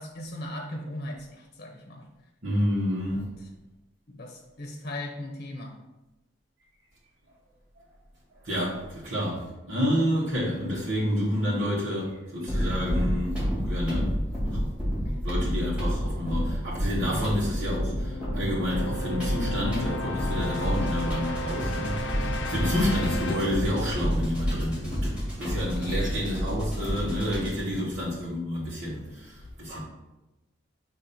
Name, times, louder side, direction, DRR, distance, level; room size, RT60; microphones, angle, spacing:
voice 1, 0.0-2.1 3.1-3.5 4.1-5.8 15.0-15.2 17.1-17.3 22.2-22.3 25.8-26.0 27.7-27.9, left 1 dB, 50° left, 1 dB, 0.8 m, -38 dB
voice 2, 2.4-3.2 8.4-14.2 14.5-14.6 15.2-25.1 25.4-29.8, equal, 80° right, -11 dB, 1.7 m, -29 dB
sound 1, 12.5-27.7, equal, 5° right, 2.0 m, -29 dB
sound 2, 17.5-25.3, left 1 dB, 75° left, 0.6 m, -35 dB
7.2 x 3.1 x 4.4 m, 1.0 s
head